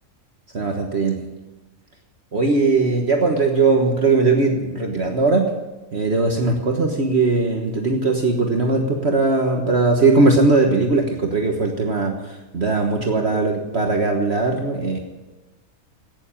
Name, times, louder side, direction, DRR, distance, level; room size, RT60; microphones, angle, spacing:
voice 1, 0.5-1.3 2.3-5.5 5.9-12.2 12.5-15.0, right 3 dB, 50° right, 2 dB, 1.6 m, -19 dB
17.0 x 7.3 x 8.8 m, 1.1 s
omnidirectional pair, 1.5 m